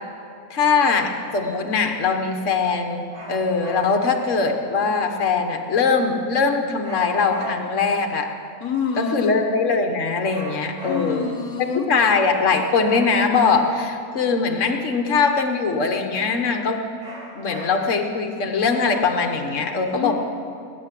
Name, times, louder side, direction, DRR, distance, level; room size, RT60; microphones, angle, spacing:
voice 1, 0.5-8.3 9.0-11.2 11.9-16.8 17.3-20.1, left 4 dB, 55° left, 4 dB, 1.6 m, -21 dB
sound 1, 3.1-4.1 6.8-7.9 10.3-11.3 12.8-13.9 17.0-18.1, equal, 80° right, 6.0 m, -38 dB
voice 2, 8.6-9.4 10.8-11.9 19.9-20.1, left 6 dB, 80° left, 5 dB, 1.4 m, -27 dB
19.0 x 8.8 x 8.4 m, 2.4 s
omnidirectional pair, 1.6 m